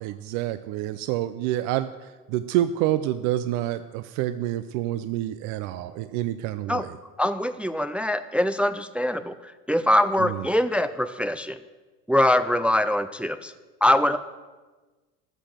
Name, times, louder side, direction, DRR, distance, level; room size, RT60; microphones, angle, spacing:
voice 1, 0.0-6.9 10.2-10.4, right 13 dB, 70° right, 12 dB, 0.6 m, -28 dB
voice 2, 7.2-11.6 12.1-13.5 13.8-14.2, left 1 dB, 5° right, 11 dB, 0.4 m, -23 dB
13.0 x 6.7 x 7.4 m, 1.3 s
supercardioid pair, 110°, 30 cm